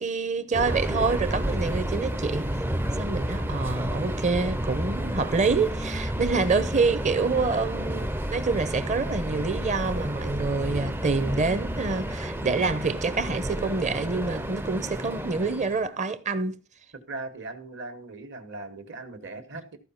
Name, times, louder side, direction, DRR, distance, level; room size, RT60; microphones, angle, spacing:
voice 1, 0.0-2.5 3.0-16.6, right 4 dB, 35° right, 0.8 m, -27 dB
Subway metro underground, 0.5-15.9, equal, 10° right, 0.5 m, -31 dB
voice 2, 17.1-19.8, right 3 dB, 55° right, 1.6 m, -39 dB
14.0 x 4.9 x 5.7 m
head